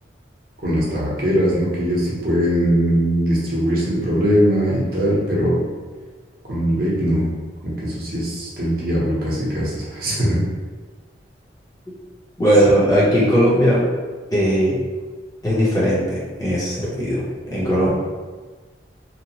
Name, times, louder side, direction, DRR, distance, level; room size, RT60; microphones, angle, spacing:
voice 1, 0.6-5.6 6.5-7.3 7.6-10.4, equal, 55° right, -6 dB, 0.7 m, -20 dB
voice 2, 12.4-13.8 14.3-14.8 15.4-17.9, equal, 20° left, -9 dB, 0.7 m, -18 dB
2.8 x 2.0 x 2.8 m, 1.4 s
head